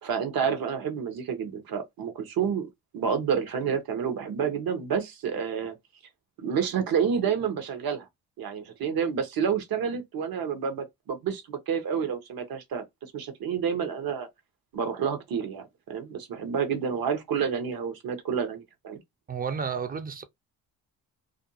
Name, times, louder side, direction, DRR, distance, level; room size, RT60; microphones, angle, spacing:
voice 1, 0.0-5.7 6.4-8.1 8.4-12.8 13.1-14.3 14.7-19.0, right 7 dB, 65° right, 0.9 m, -29 dB
voice 2, 19.3-20.2, right 6 dB, 25° right, 0.5 m, -31 dB
2.6 x 2.2 x 2.7 m
cardioid pair, 80°, 39 cm